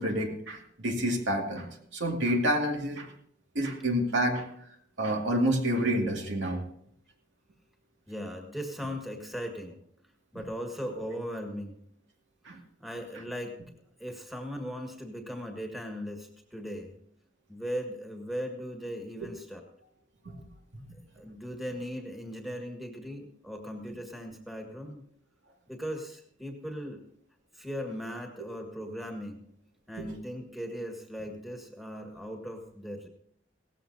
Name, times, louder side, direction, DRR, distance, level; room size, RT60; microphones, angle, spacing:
voice 1, 0.0-3.1 3.5-4.5 5.0-6.6 12.4-12.6 19.2-19.3 28.4-28.5 30.0-30.1, equal, 75° right, 1 dB, 2.3 m, -28 dB
voice 2, 8.1-9.8 10.3-11.8 12.8-13.6 14.0-17.0 17.5-19.6 21.2-25.0 25.7-27.0 27.5-29.5 29.9-33.1, equal, ahead, 2 dB, 1.7 m, -38 dB
17.5 x 15.0 x 2.8 m, 0.67 s
head